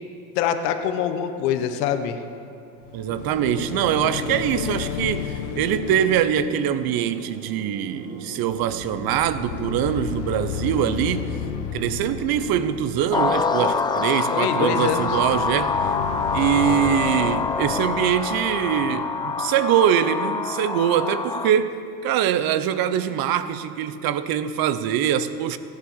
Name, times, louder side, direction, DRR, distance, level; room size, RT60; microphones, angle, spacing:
voice 1, 0.3-2.2 14.3-15.1, left 9 dB, 70° left, 8 dB, 1.4 m, -24 dB
sound 1, 2.8-8.2 8.5-13.7 14.7-19.5, left 12 dB, 50° left, 0.7 m, -34 dB
voice 2, 2.9-11.4 11.7-15.8 16.3-25.6, right 10 dB, 45° right, 13 dB, 1.0 m, -23 dB
sound 2, 3.1-17.5, right 4 dB, 80° right, 2.6 m, -39 dB
sound 3, 13.1-21.5, left 4 dB, 10° left, 0.4 m, -25 dB
15.5 x 10.5 x 7.4 m, 2.6 s
supercardioid pair, 110°, 49 cm